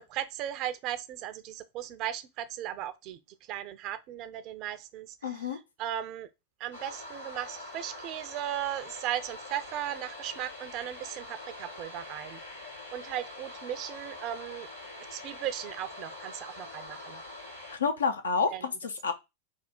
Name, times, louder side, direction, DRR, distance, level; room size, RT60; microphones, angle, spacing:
voice 1, 0.0-3.2 3.5-6.3 6.6-12.4 12.9-14.7 15.1-17.2 18.5-18.6, right 12 dB, 40° right, 0.4 m, -37 dB
voice 2, 5.2-5.6 17.7-19.1, left 5 dB, 70° left, 0.7 m, -29 dB
sound 1, 6.7-17.8, left 2 dB, 85° left, 1.9 m, -44 dB
3.4 x 2.3 x 4.2 m
figure-of-eight pair, 90°, 0 cm